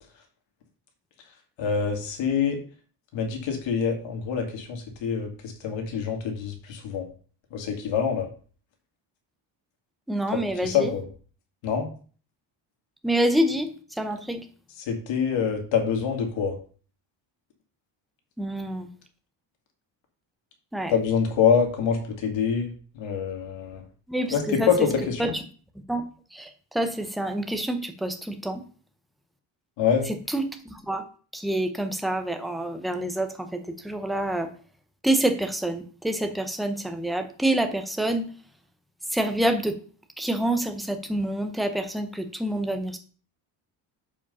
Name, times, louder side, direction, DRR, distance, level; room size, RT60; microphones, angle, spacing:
voice 1, 1.6-2.6 3.1-7.1 7.5-8.3 10.3-11.0 11.6-11.9 14.9-16.5 20.9-23.8 24.3-25.3 29.8-30.1, left 7 dB, 70° left, 3 dB, 2.3 m, -25 dB
voice 2, 10.1-10.9 13.0-14.4 18.4-18.9 20.7-20.9 24.1-24.7 25.2-25.3 25.9-26.0 26.3-28.6 30.1-31.0 31.3-34.5 35.0-38.3 39.1-39.8 40.2-43.0, right 1 dB, ahead, 6 dB, 0.6 m, -27 dB
7.4 x 5.0 x 5.4 m, 0.41 s
cardioid pair, 175°, 47 cm